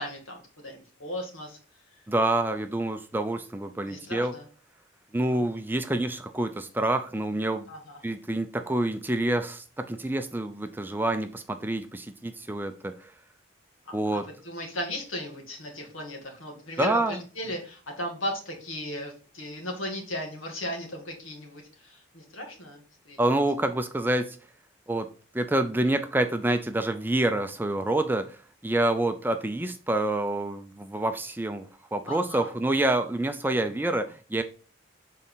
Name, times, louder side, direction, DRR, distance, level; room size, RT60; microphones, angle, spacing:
voice 1, 0.0-1.6 3.9-4.4 7.7-8.0 13.9-23.2 32.1-32.5, left 1 dB, 85° left, 2 dB, 2.1 m, -36 dB
voice 2, 2.1-4.4 5.1-7.7 8.0-13.1 13.9-14.2 16.8-17.2 23.2-24.4 24.9-31.7 31.9-34.4, right 1 dB, 10° right, 8 dB, 0.4 m, -27 dB
7.5 x 4.1 x 3.9 m, 0.38 s
head